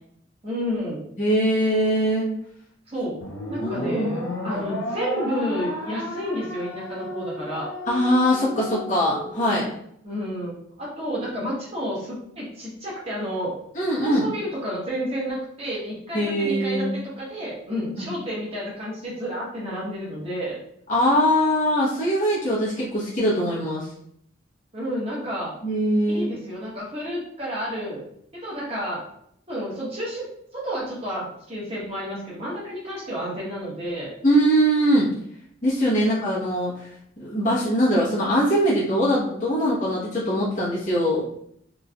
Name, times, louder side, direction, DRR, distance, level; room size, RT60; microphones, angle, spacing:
voice 1, 0.4-1.0 2.9-3.2 3.5-7.7 10.0-13.6 14.0-20.6 24.7-25.5 26.1-28.0 28.4-29.0 29.5-30.3 30.5-34.1 35.9-36.1, equal, 30° right, -5 dB, 1.2 m, -30 dB
voice 2, 1.2-2.3 3.6-4.6 7.9-9.6 13.7-14.3 16.1-17.0 18.0-18.1 20.9-23.9 25.6-26.3 34.2-35.1 35.6-36.9 37.2-41.2, equal, 40° left, -7 dB, 1.0 m, -22 dB
sound 1, 3.2-9.7, left 1 dB, 80° left, 0.7 m, -33 dB
3.1 x 3.1 x 2.3 m, 0.70 s
head